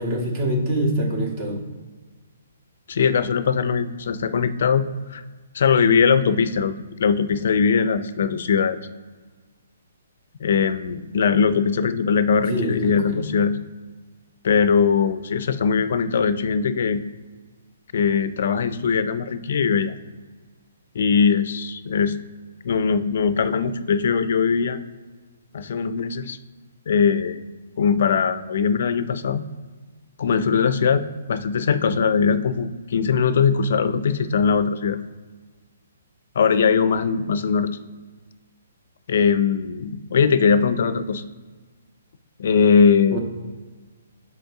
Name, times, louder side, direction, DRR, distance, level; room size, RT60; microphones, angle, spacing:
voice 1, 0.0-1.6 12.5-13.2 43.1-43.2, right 1 dB, 40° right, 1 dB, 1.6 m, -24 dB
voice 2, 2.9-5.2 5.5-6.7 7.0-8.8 10.4-13.6 14.4-17.0 17.9-20.0 20.9-22.2 22.6-24.8 25.5-26.4 26.9-27.4 27.8-29.4 30.2-35.0 36.4-37.7 39.1-41.2 42.4-43.2, left 6 dB, 60° left, 13 dB, 0.4 m, -20 dB
5.2 x 5.1 x 3.7 m, 1.4 s
hypercardioid pair, 140°, 0 cm